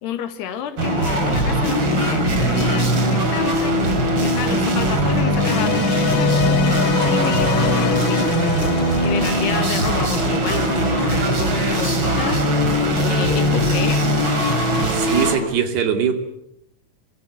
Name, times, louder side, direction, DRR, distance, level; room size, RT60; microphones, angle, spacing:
voice 1, 0.0-3.8 4.2-8.3 9.0-14.4, left 9 dB, 90° left, 9 dB, 3.9 m, -30 dB
sound 1, 0.8-15.4, equal, 30° right, 4.2 m, -20 dB
sound 2, 5.2-10.5, left 10 dB, 75° left, 3.3 m, -27 dB
sound 3, 7.0-11.2, left 2 dB, 30° left, 3.6 m, -39 dB
voice 2, 14.9-16.1, right 7 dB, 80° right, 6 dB, 4.8 m, -21 dB
26.0 x 26.0 x 7.9 m, 0.79 s
omnidirectional pair, 4.5 m